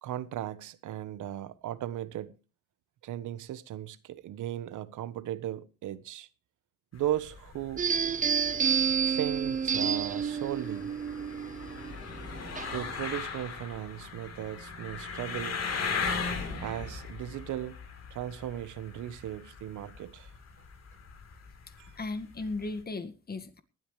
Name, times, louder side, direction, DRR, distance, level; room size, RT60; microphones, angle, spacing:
voice 1, 0.0-2.4 3.0-6.3 6.9-8.3 9.1-10.9 12.7-15.6 16.6-17.8 18.1-20.3 21.8-22.0, right 12 dB, 80° right, 1.2 m, -37 dB
sound 1, 6.9-22.8, left 5 dB, 60° left, 3.6 m, -39 dB
sound 2, 7.8-13.0, right 7 dB, 25° right, 0.6 m, -30 dB
voice 2, 22.0-23.6, left 3 dB, 30° left, 1.8 m, -36 dB
19.0 x 12.5 x 3.3 m
cardioid pair, 90°, 30 cm